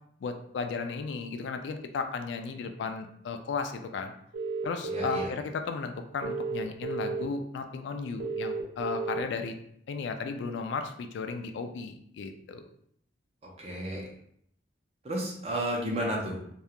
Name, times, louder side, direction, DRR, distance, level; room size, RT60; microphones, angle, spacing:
voice 1, 0.2-4.1 4.6-9.6 9.9-12.7, left 4 dB, 70° left, 6 dB, 0.3 m, -35 dB
sound 1, 4.3-5.2 6.2-7.2 8.2-9.2, right 4 dB, 90° right, 0.5 m, -32 dB
voice 2, 4.9-5.3 13.6-14.1 15.0-16.4, right 1 dB, 35° right, -1 dB, 0.5 m, -32 dB
2.4 x 2.2 x 2.8 m, 0.69 s
head